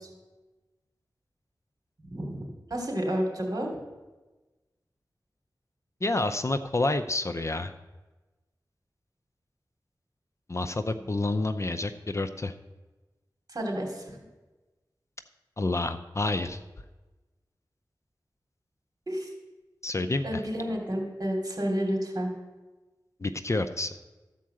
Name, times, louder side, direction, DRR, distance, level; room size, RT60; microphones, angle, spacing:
voice 1, 2.0-3.7 13.5-14.2 19.1-19.3 20.2-22.3, equal, 50° right, 0 dB, 2.8 m, -30 dB
voice 2, 6.0-7.7 10.5-12.5 15.6-16.6 19.8-20.4 23.2-23.9, left 2 dB, 40° left, 9 dB, 0.6 m, -29 dB
13.5 x 4.7 x 7.5 m, 1.2 s
wide cardioid pair, 70°, 8 cm